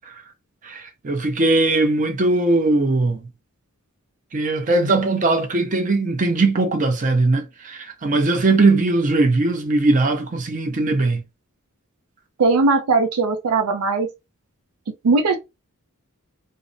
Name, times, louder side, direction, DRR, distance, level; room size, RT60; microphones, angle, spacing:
voice 1, 0.6-3.3 4.3-11.2, right 2 dB, 35° right, 0.5 m, -20 dB
voice 2, 12.4-14.1 15.0-15.4, right 3 dB, 85° right, 0.4 m, -18 dB
2.7 x 2.0 x 2.5 m
head